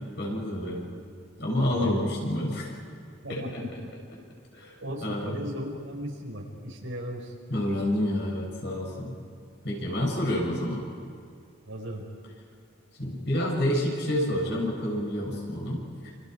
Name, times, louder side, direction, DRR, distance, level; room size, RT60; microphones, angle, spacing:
voice 1, 0.2-0.9 1.4-2.7 3.3-4.0 4.5-4.7 5.0-5.4 7.5-9.2 9.6-10.9 13.0-15.8, left 1 dB, 55° left, -2 dB, 7.2 m, -28 dB
voice 2, 1.7-2.1 3.2-3.7 4.8-7.3 11.6-12.1, equal, 75° right, -1 dB, 5.2 m, -36 dB
29.0 x 28.5 x 4.8 m, 2.3 s
head